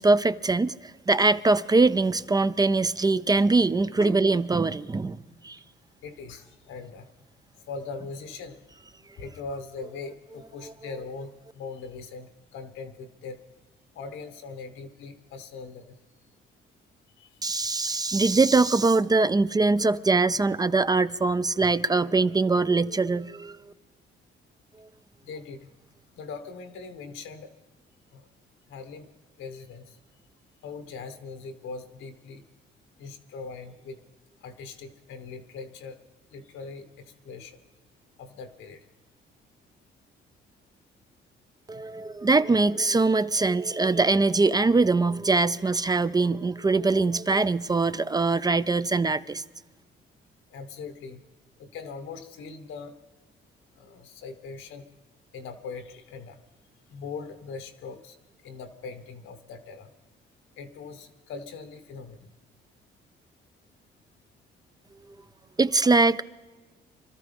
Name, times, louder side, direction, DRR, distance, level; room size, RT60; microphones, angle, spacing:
voice 1, 0.0-5.2 5.4-5.6 10.6-10.7 17.4-23.7 41.7-49.4 65.6-66.2, right 3 dB, 20° right, 0.4 m, -22 dB
voice 2, 6.0-7.1 7.7-8.6 9.1-13.4 13.9-15.9 17.2-17.4 25.2-25.7 26.1-27.5 28.1-28.3 28.7-29.1 29.4-30.0 30.6-32.4 33.0-34.0 34.4-36.0 36.3-37.6 38.2-38.8 50.5-51.2 51.6-52.9 53.8-54.8 55.3-56.4 56.9-58.2 58.4-59.9 60.6-62.3, left 4 dB, 90° left, 1.4 m, -41 dB
25.5 x 13.5 x 3.5 m
cardioid pair, 90°, 20 cm